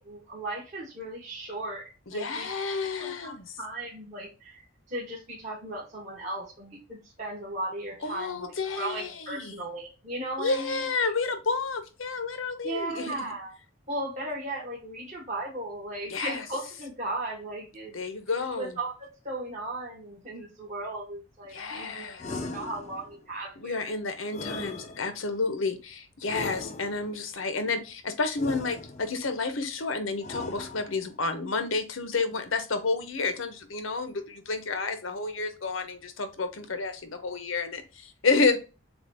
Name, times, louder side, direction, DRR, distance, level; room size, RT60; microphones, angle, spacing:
voice 1, 0.0-2.5 3.0-10.9 12.6-13.5 13.9-18.0 18.6-23.9, right 2 dB, 40° right, -6 dB, 1.4 m, -36 dB
voice 2, 2.1-3.5 8.0-9.5 10.4-13.3 16.1-16.4 17.9-18.8 21.5-22.4 23.6-38.6, left 4 dB, 90° left, 9 dB, 0.9 m, -30 dB
sound 1, 22.2-23.2 24.3-25.4 26.3-27.2 28.3-29.3 30.2-31.2, left 3 dB, 35° left, 0.5 m, -38 dB
7.0 x 2.4 x 2.8 m, 0.31 s
head